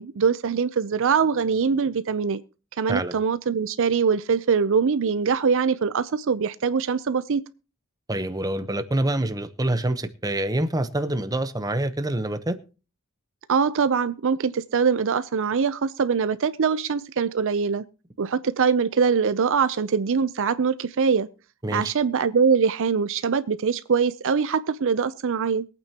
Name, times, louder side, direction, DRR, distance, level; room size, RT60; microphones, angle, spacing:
voice 1, 0.0-2.4 2.8-7.4 13.5-17.8 18.2-21.3 21.7-25.7, right 6 dB, 60° right, 0.5 m, -23 dB
voice 2, 8.1-12.6 21.6-21.9, right 1 dB, 15° right, 0.8 m, -26 dB
23.0 x 8.9 x 2.9 m
head